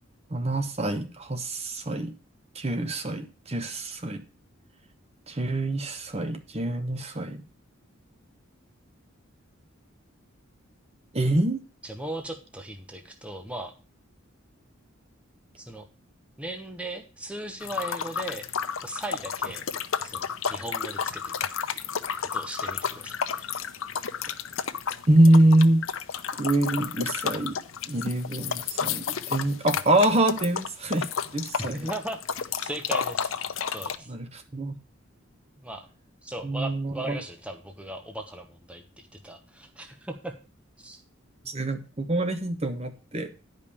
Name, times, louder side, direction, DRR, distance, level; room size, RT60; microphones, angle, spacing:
voice 1, 0.3-2.1 2.5-4.2 5.3-7.4 11.1-11.6 25.1-25.8 26.4-27.6 27.9-31.9 34.1-34.8 36.4-37.2 41.4-43.3, right 1 dB, 30° right, 8 dB, 1.1 m, -25 dB
voice 2, 11.8-13.7 15.6-15.9 16.4-18.4 18.8-19.6 20.0-21.5 22.2-23.5 31.6-33.5 33.7-34.1 35.6-35.9 36.2-40.3 40.8-41.0, right 1 dB, 5° right, 4 dB, 1.0 m, -38 dB
sound 1, 17.6-34.0, left 7 dB, 80° left, 0.8 m, -31 dB
10.5 x 5.4 x 7.0 m, 0.34 s
head